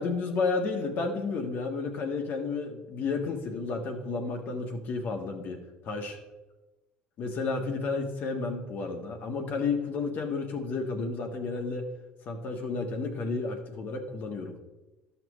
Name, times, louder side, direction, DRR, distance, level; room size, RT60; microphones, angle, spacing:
voice 1, 0.0-6.2 7.2-11.9 12.2-14.5, left 4 dB, 55° left, 4 dB, 1.5 m, -32 dB
12.5 x 5.9 x 3.2 m, 1.1 s
supercardioid pair, 95°, 4 cm